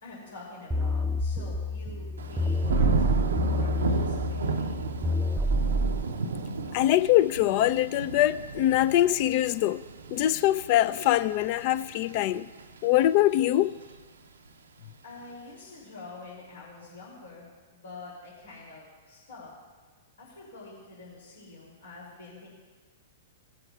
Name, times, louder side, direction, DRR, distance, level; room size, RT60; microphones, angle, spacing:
voice 1, 0.0-5.0 15.0-19.5 20.2-22.5, left 3 dB, 75° left, 2.9 m, -46 dB
sound 1, 0.7-6.0, equal, 10° right, 0.5 m, -28 dB
Thunder / Rain, 2.2-13.1 13.5-14.0, right 3 dB, 75° right, 0.5 m, -33 dB
voice 2, 6.7-9.8 10.1-12.5 12.8-13.7, left 14 dB, 45° left, 0.4 m, -23 dB
17.0 x 7.6 x 2.4 m
figure-of-eight pair, 110°, 0 cm